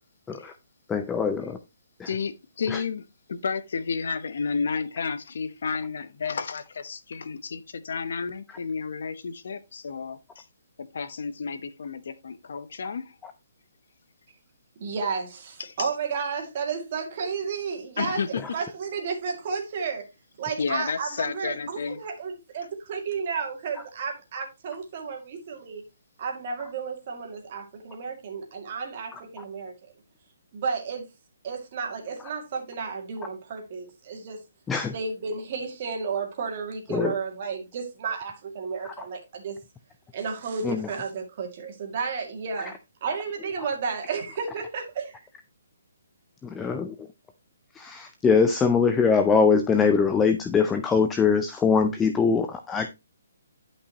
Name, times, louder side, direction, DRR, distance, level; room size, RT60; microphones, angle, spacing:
voice 1, 0.9-1.6 2.0-2.1 2.7-2.8 29.1-29.2 34.7-34.9 36.9-37.1 40.6-40.9 46.4-47.1 47.8-52.9, left 5 dB, 5° left, 0.4 m, -22 dB
voice 2, 2.0-10.5 10.8-13.1 15.6-15.9 18.0-18.4 20.6-22.0, left 5 dB, 55° left, 0.9 m, -31 dB
voice 3, 14.8-20.1 20.4-25.8 26.2-29.7 30.5-31.1 31.4-34.4 34.9-39.6 40.1-42.7 43.0-45.2, right 5 dB, 30° right, 2.2 m, -32 dB
11.0 x 5.6 x 2.9 m
hypercardioid pair, 175°, 0 cm